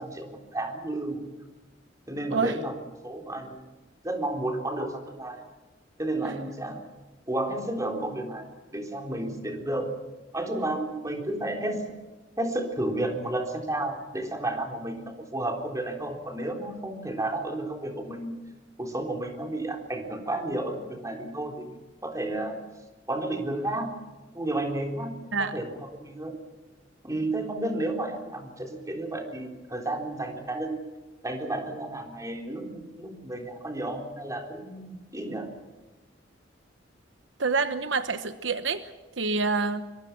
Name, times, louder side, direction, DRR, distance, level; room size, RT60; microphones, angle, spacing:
voice 1, 0.0-1.3 2.1-2.7 3.0-3.8 4.0-5.4 6.0-6.9 7.3-10.0 10.3-12.0 12.4-18.4 18.8-21.7 22.0-22.7 23.1-24.1 24.3-26.4 27.0-30.8 31.2-35.5, right 1 dB, 20° right, 2 dB, 3.7 m, -32 dB
voice 2, 37.4-38.9 39.2-39.8, right 4 dB, 75° right, 10 dB, 1.1 m, -27 dB
25.0 x 23.0 x 6.0 m, 1.2 s
head